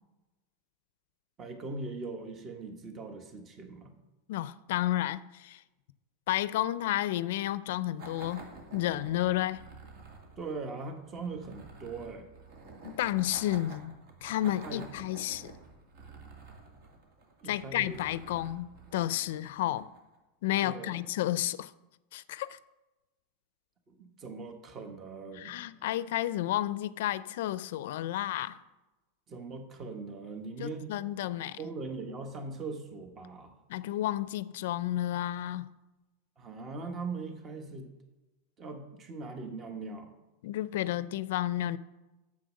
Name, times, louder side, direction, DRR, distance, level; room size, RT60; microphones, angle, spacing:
voice 1, 1.4-3.9 10.4-12.3 14.6-14.8 17.4-18.0 20.6-21.0 23.9-25.6 29.3-30.9 31.6-33.6 36.4-37.9 38.6-40.1, right 3 dB, 25° right, 1.2 m, -40 dB
voice 2, 4.3-5.6 6.3-8.5 8.7-9.6 12.8-13.9 14.2-15.5 17.5-19.9 20.4-21.7 22.1-22.6 25.4-28.6 30.6-31.6 33.7-35.7 40.4-41.8, left 13 dB, 70° left, 0.4 m, -31 dB
sound 1, 8.0-20.2, right 3 dB, 60° right, 2.0 m, -50 dB
7.7 x 7.4 x 6.4 m
supercardioid pair, 135°, 0 cm